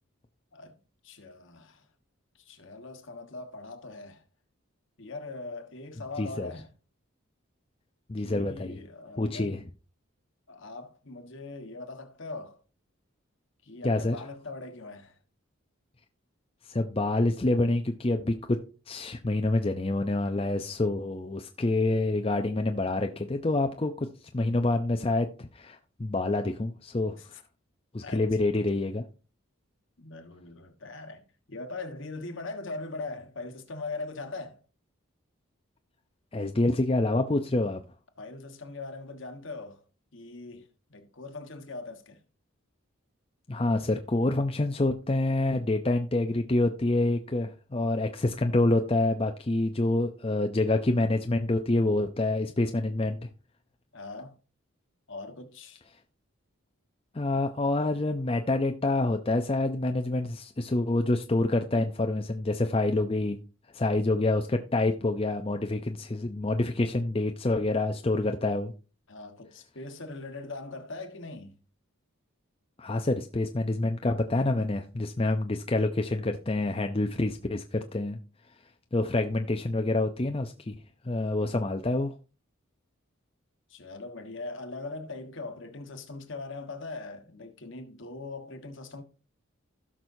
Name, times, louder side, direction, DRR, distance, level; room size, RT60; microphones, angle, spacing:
voice 1, 1.0-1.9 2.3-4.2 5.0-6.7 8.2-9.5 10.5-12.6 13.6-15.2 27.2-27.4 28.0-28.4 30.0-34.6 38.2-39.8 40.1-42.2 53.9-54.4 55.1-55.8 63.9-64.0 69.1-71.6 81.2-81.4 83.7-89.0, left 3 dB, 60° left, 1.4 m, -41 dB
voice 2, 6.2-6.5 8.1-8.8 9.2-9.6 13.8-14.2 16.7-18.6 18.9-24.1 24.3-27.2 27.9-29.0 36.3-37.8 43.5-53.3 57.1-63.4 63.7-68.7 72.8-78.2 78.9-80.8 81.0-82.1, left 2 dB, 25° left, 0.5 m, -27 dB
16.5 x 6.1 x 2.7 m
head